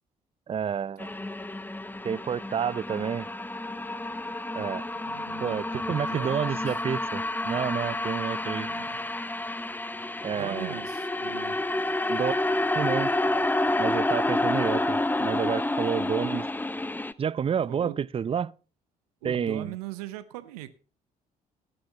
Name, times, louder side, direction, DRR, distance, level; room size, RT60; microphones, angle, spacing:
voice 1, 0.5-1.1 2.0-3.3 4.5-4.8 5.4-8.7 10.2-10.8 12.1-12.4 12.7-13.4 13.8-16.5 17.2-18.5 19.2-19.7, right 7 dB, 30° right, 0.5 m, -29 dB
sound 1, 1.0-17.1, left 2 dB, 10° left, 0.8 m, -29 dB
voice 2, 5.1-6.8 8.6-9.0 10.3-11.6 17.7-18.1 19.2-20.7, right 15 dB, 80° right, 0.8 m, -40 dB
17.0 x 11.5 x 2.9 m
hypercardioid pair, 45°, 19 cm